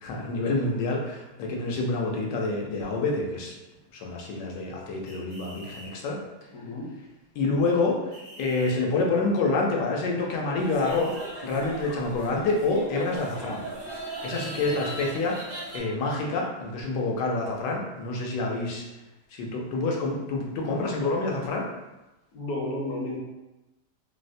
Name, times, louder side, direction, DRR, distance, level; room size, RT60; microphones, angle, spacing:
voice 1, 0.0-3.5 3.9-6.2 7.4-8.0 8.4-11.1 11.4-13.6 14.2-15.4 15.7-18.8 19.3-21.7, left 3 dB, 85° left, -1 dB, 1.3 m, -27 dB
sound 1, 5.1-5.9 8.1-8.8 10.9-11.3 14.1-14.9, equal, 85° right, 1.7 m, -45 dB
voice 2, 6.5-6.9 14.6-14.9 22.3-23.2, left 1 dB, 65° left, -4 dB, 1.2 m, -33 dB
sound 2, 10.6-15.8, right 1 dB, 35° right, 0.3 m, -39 dB
3.9 x 2.1 x 2.5 m, 1.0 s
omnidirectional pair, 1.8 m